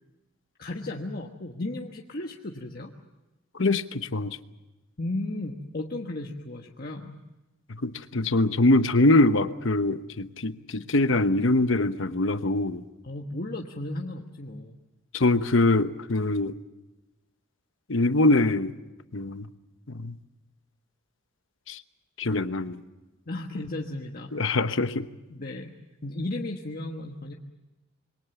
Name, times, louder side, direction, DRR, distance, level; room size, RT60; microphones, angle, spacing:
voice 1, 0.6-2.9 5.0-7.2 13.0-14.8 23.3-24.5 25.3-25.7 26.0-27.3, left 2 dB, 45° left, 1 dB, 1.4 m, -34 dB
voice 2, 3.6-4.4 7.8-12.8 15.1-16.5 17.9-18.7 19.1-19.5 20.0-20.2 21.7-21.8 22.2-22.8 24.3-25.1, left 2 dB, 65° left, 11 dB, 1.0 m, -23 dB
26.5 x 23.0 x 7.1 m, 1.1 s
head